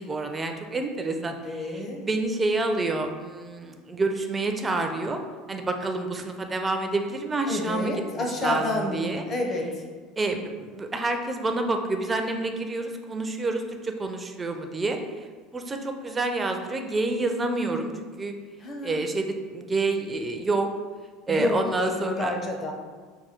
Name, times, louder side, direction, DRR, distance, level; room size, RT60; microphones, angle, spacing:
voice 1, 0.0-5.2 5.5-9.2 10.2-15.0 15.5-18.3 18.8-20.7 21.3-22.4, right 2 dB, 15° right, 5 dB, 0.4 m, -28 dB
voice 2, 1.4-2.1 7.5-9.8 18.6-19.0 21.3-22.7, left 2 dB, 30° left, 2 dB, 0.7 m, -29 dB
4.7 x 2.2 x 4.2 m, 1.5 s
supercardioid pair, 130°, 0 cm